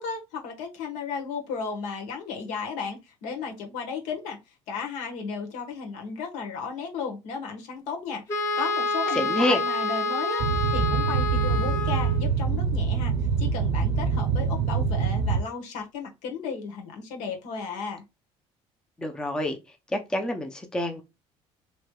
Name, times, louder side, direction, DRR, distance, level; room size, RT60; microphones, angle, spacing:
voice 1, 0.0-4.4 4.7-10.4 10.7-13.1 13.4-18.0, left 5 dB, 90° left, 1.2 m, -34 dB
Wind instrument woodwind instrument, 8.3-12.3, left 2 dB, 25° left, 1.1 m, -28 dB
voice 2, 9.1-9.6 19.0-19.6 19.9-21.0, left 1 dB, 5° left, 0.4 m, -27 dB
Boat Water vehicle, 10.4-15.4, right 5 dB, 70° right, 0.5 m, -25 dB
3.1 x 3.0 x 2.2 m
cardioid pair, 170°, 12 cm